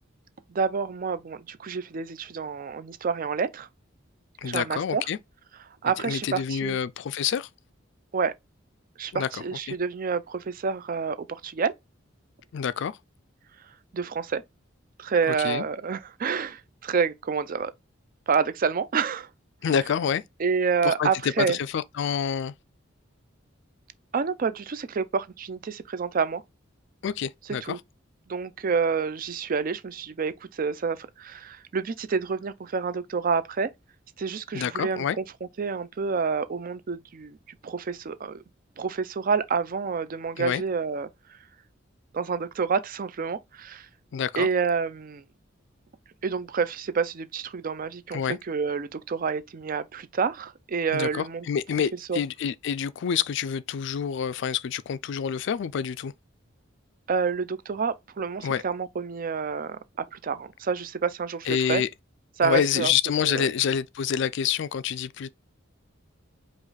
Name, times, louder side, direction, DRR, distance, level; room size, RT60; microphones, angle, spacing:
voice 1, 0.5-3.7 4.4-5.0 5.8-6.8 8.1-8.3 9.0-11.7 13.9-14.4 15.0-17.7 18.3-19.3 20.4-21.6 24.1-26.4 27.6-27.8 28.3-33.7 34.2-35.2 35.6-37.4 37.6-38.4 38.8-41.1 42.1-43.9 44.4-45.2 46.2-48.2 48.5-51.5 52.1-52.2 57.1-61.8 62.4-62.9 63.2-63.4, right 5 dB, 45° right, 0.5 m, -28 dB
voice 2, 4.4-5.2 6.0-7.5 9.1-9.3 9.7-9.8 12.5-13.0 15.3-15.6 19.6-20.2 20.8-22.5 27.0-27.8 34.5-35.2 40.4-40.6 44.1-44.5 48.1-48.4 50.9-56.1 58.4-58.6 61.5-61.9 62.4-65.3, left 8 dB, 65° left, 0.4 m, -27 dB
5.0 x 2.5 x 4.0 m
head